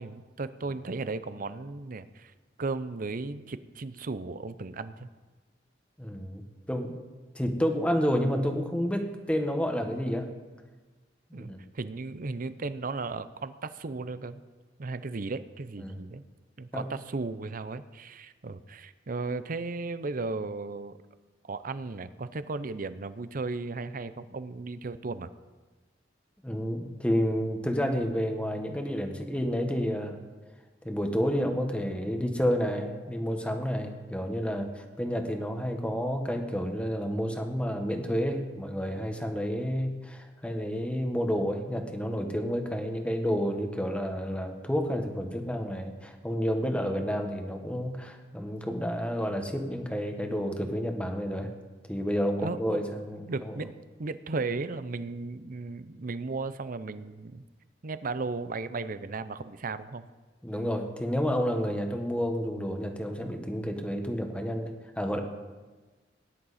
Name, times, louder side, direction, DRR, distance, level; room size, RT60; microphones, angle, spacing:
voice 1, 0.0-2.3 2.6-5.1 11.3-14.4 14.8-16.2 16.6-21.0 21.5-25.3 52.4-52.8 53.3-53.7 54.0-57.5 57.8-60.1, right 3 dB, 50° right, 13 dB, 0.6 m, -35 dB
voice 2, 6.0-7.0 7.3-10.3 11.3-11.6 15.8-16.0 16.7-16.8 26.4-30.2 30.8-51.5 51.9-53.6 60.4-65.2, equal, 5° left, 4 dB, 1.3 m, -30 dB
18.5 x 10.5 x 4.2 m, 1.3 s
head